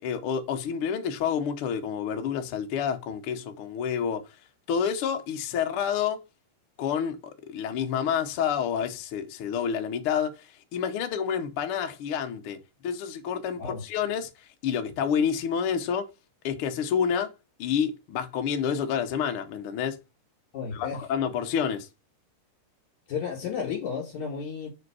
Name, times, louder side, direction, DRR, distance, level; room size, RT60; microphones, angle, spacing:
voice 1, 0.0-4.4 4.7-6.2 6.8-7.2 7.5-14.3 14.6-16.1 16.4-17.3 17.6-20.0 20.7-21.9, left 7 dB, 85° left, 1.2 m, -28 dB
voice 2, 20.5-21.0 23.1-24.7, left 6 dB, 60° left, 3.6 m, -32 dB
5.2 x 5.1 x 4.7 m
omnidirectional pair, 3.9 m